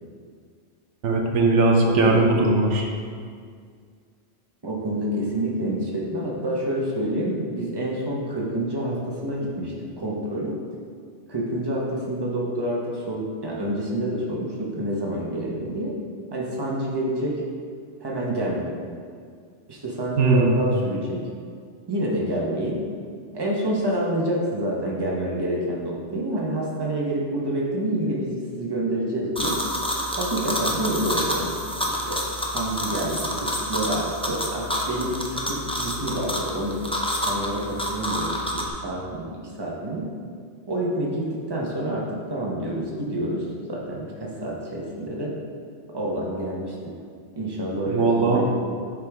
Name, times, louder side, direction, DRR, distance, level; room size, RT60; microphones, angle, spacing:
voice 1, 1.0-2.9 20.2-20.5 47.9-48.4, right 3 dB, 85° right, 1 dB, 1.1 m, -19 dB
voice 2, 1.8-2.2 4.6-10.5 11.3-15.9 16.3-17.4 18.0-18.7 19.7-21.2 21.9-22.8 23.3-29.6 30.2-31.5 31.9-32.2 32.5-36.8 37.3-39.3 39.6-40.1 40.7-43.4 43.7-45.3 45.9-46.9 47.4-48.5, right 1 dB, 20° right, -4 dB, 1.1 m, -28 dB
sound 1, 29.4-38.7, equal, 5° left, 0.5 m, -28 dB
8.4 x 5.0 x 3.6 m, 2.1 s
omnidirectional pair, 1.2 m